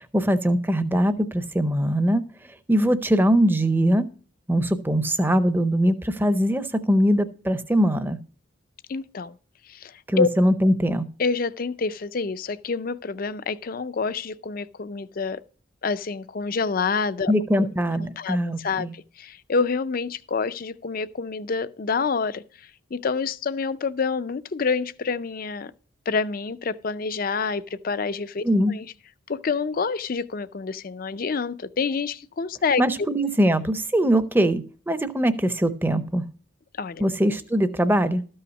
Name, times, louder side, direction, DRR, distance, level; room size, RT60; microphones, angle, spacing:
voice 1, 0.1-2.2 2.7-4.1 4.5-8.2 10.1-11.0 17.3-18.9 28.4-28.7 32.8-36.2 37.0-38.3, equal, 10° right, 0.6 m, -22 dB
voice 2, 8.9-9.4 9.7-10.3 11.2-15.4 15.8-17.3 17.6-17.7 18.0-22.4 22.9-25.7 26.1-28.9 29.3-32.8 36.8-37.0, left 4 dB, 40° left, 0.4 m, -27 dB
13.0 x 5.6 x 5.2 m
head